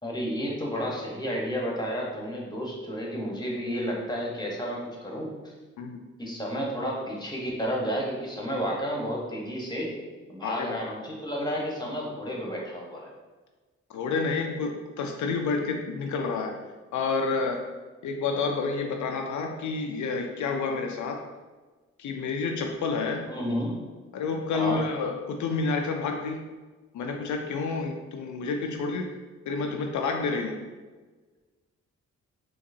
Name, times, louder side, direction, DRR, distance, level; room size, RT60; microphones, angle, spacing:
voice 1, 0.0-5.5 6.2-9.9 10.3-13.1 23.3-23.8 24.5-24.8, equal, 15° left, -3 dB, 1.1 m, -31 dB
voice 2, 10.4-10.9 13.9-16.6 16.9-17.7 18.0-21.2 22.0-23.3 24.1-26.4 26.9-29.1 29.5-30.6, left 4 dB, 70° left, 3 dB, 0.4 m, -29 dB
3.7 x 2.9 x 2.7 m, 1.3 s
supercardioid pair, 50°, 30 cm